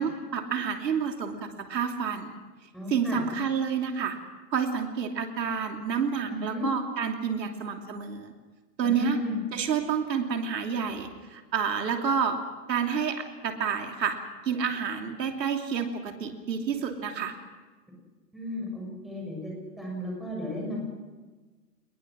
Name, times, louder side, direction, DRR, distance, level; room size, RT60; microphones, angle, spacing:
voice 1, 0.0-2.4 2.9-4.2 4.5-8.3 8.8-9.2 9.5-12.4 12.7-14.2 14.4-17.3, right 6 dB, 80° right, 4 dB, 3.1 m, -29 dB
voice 2, 2.7-3.2 6.3-6.6 8.8-9.4 18.3-20.8, left 1 dB, ahead, -3 dB, 6.5 m, -35 dB
27.0 x 21.0 x 6.3 m, 1.3 s
hypercardioid pair, 150°, 50 cm